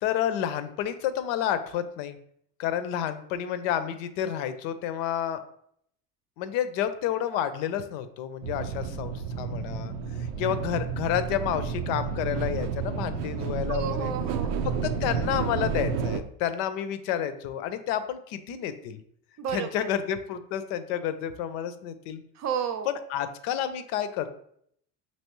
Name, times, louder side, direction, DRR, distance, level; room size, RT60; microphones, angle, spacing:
voice 1, 0.0-2.2 2.6-5.4 6.4-9.9 10.4-14.1 14.6-19.0 19.5-22.2 22.9-24.3, left 10 dB, 65° left, 11 dB, 0.7 m, -30 dB
sound 1, 8.4-16.2, right 6 dB, 80° right, 0.6 m, -31 dB
voice 2, 13.7-14.6 19.4-19.9 22.4-22.9, right 7 dB, 35° right, 8 dB, 0.6 m, -32 dB
5.4 x 2.9 x 3.0 m, 0.68 s
hypercardioid pair, 80°, 49 cm